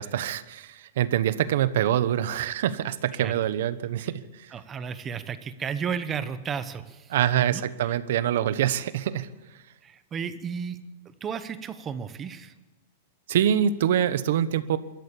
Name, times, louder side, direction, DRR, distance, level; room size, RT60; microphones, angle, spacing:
voice 1, 0.0-4.5 7.1-9.3 13.3-14.8, right 10 dB, 60° right, 14 dB, 1.1 m, -25 dB
voice 2, 4.5-7.9 9.8-12.5, right 7 dB, 15° right, 12 dB, 0.9 m, -34 dB
23.5 x 13.5 x 8.4 m, 1.1 s
supercardioid pair, 175°, 0 cm